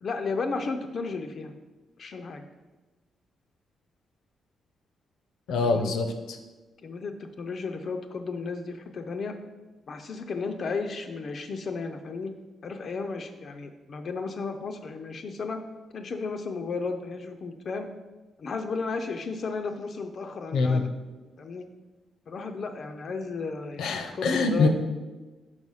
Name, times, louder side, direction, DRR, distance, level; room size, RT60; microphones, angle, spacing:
voice 1, 0.0-1.5 2.0-2.5 5.6-5.9 6.8-9.4 9.9-12.3 12.6-15.6 15.9-17.9 18.4-20.9 21.4-21.7 22.3-24.7, left 4 dB, 45° left, 5 dB, 0.4 m, -34 dB
voice 2, 5.5-6.4 20.5-20.8 23.8-24.7, left 3 dB, 80° left, 6 dB, 0.7 m, -24 dB
4.8 x 4.8 x 5.5 m, 1.2 s
cardioid pair, 145°, 0 cm